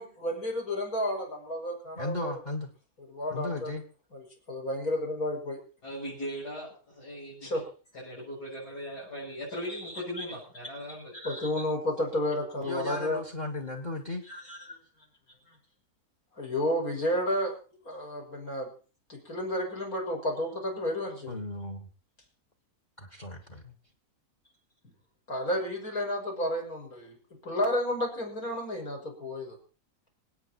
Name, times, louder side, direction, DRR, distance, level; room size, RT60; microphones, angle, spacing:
voice 1, 0.0-2.4 3.1-3.7 4.1-5.6 7.4-7.6 9.7-10.3 11.1-13.2 14.3-14.6 16.4-17.5 17.8-18.7 19.1-21.3 25.3-27.1 27.4-29.6, left 1 dB, 60° left, 0 dB, 6.3 m, -31 dB
voice 2, 1.9-2.7 3.3-3.8 12.6-14.2 21.3-21.9 23.0-23.7, left 2 dB, 30° left, 6 dB, 1.8 m, -36 dB
voice 3, 5.8-7.6 7.9-11.1, equal, 85° left, -8 dB, 7.5 m, -39 dB
27.0 x 9.0 x 4.4 m, 0.38 s
omnidirectional pair, 1.7 m